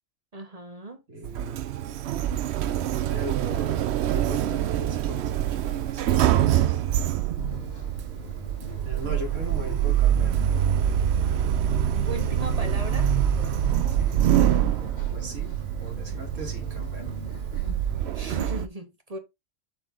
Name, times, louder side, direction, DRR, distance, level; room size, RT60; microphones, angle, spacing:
voice 1, 0.3-1.0 12.1-13.1 18.1-19.2, right 2 dB, 35° right, 1.0 m, -37 dB
voice 2, 1.1-2.2 3.0-6.8 8.8-10.5 13.9-14.8 15.1-17.2, right 2 dB, 85° right, 2.4 m, -39 dB
Sliding door, 1.2-18.7, right 10 dB, 65° right, 0.8 m, -25 dB
sound 1, 7.4-18.5, right 1 dB, 35° left, 1.8 m, -39 dB
7.5 x 4.5 x 3.7 m
omnidirectional pair, 1.3 m